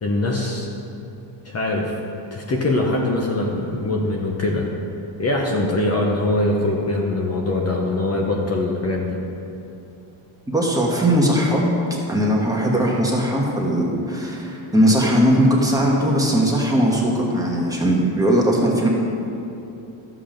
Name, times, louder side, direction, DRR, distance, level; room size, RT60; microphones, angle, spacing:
voice 1, 0.0-0.7 1.4-1.9 2.3-4.7 5.2-9.2, left 2 dB, 30° left, -1 dB, 0.9 m, -22 dB
voice 2, 10.5-11.6 12.1-18.9, equal, 5° right, -3 dB, 1.3 m, -19 dB
12.5 x 7.6 x 5.1 m, 2.9 s
cardioid pair, 160°, 48 cm